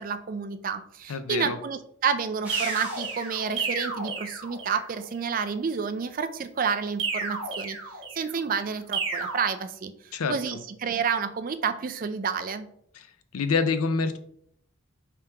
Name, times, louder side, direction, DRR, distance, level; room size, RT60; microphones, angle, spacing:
voice 1, 0.0-7.8 8.2-12.7, right 6 dB, 40° right, 10 dB, 0.3 m, -30 dB
voice 2, 1.1-1.6 10.1-10.6 13.3-14.2, left 4 dB, 90° left, 11 dB, 0.5 m, -26 dB
sound 1, 2.4-3.7, right 1 dB, 5° right, 1.0 m, -40 dB
sound 2, 2.5-4.9 7.0-8.4 8.9-9.4, right 4 dB, 65° right, 1.2 m, -32 dB
3.6 x 2.9 x 4.5 m, 0.68 s
head